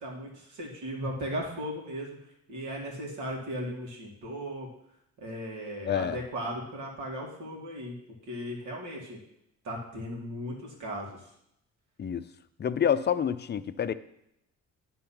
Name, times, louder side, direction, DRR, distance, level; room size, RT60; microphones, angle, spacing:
voice 1, 0.0-2.2 2.5-4.7 5.2-8.0 8.3-9.2 9.6-11.2, equal, 80° right, -2 dB, 2.4 m, -37 dB
voice 2, 5.9-6.2 12.0-12.2 12.6-13.9, left 8 dB, 35° left, 12 dB, 0.5 m, -27 dB
10.0 x 3.9 x 5.8 m, 0.77 s
cardioid pair, 90°, 30 cm